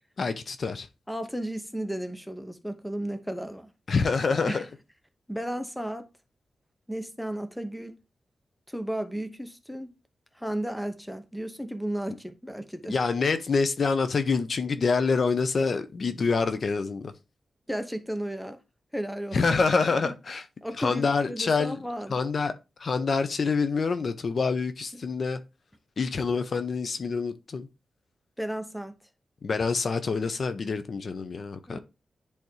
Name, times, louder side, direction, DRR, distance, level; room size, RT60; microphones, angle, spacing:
voice 1, 0.2-0.9 3.9-4.6 12.9-17.1 19.3-20.4 20.8-21.8 22.1-22.5 22.8-25.4 26.0-27.7 29.4-31.8, left 4 dB, 55° left, 0.7 m, -26 dB
voice 2, 1.1-3.7 4.4-4.6 5.3-6.1 6.9-7.9 8.7-9.9 10.4-13.0 17.7-18.6 18.9-19.4 20.0-20.1 20.6-22.2 28.4-28.9 31.7-31.8, right 1 dB, ahead, 0.8 m, -34 dB
10.5 x 3.5 x 3.1 m
wide cardioid pair, 110°, 0 cm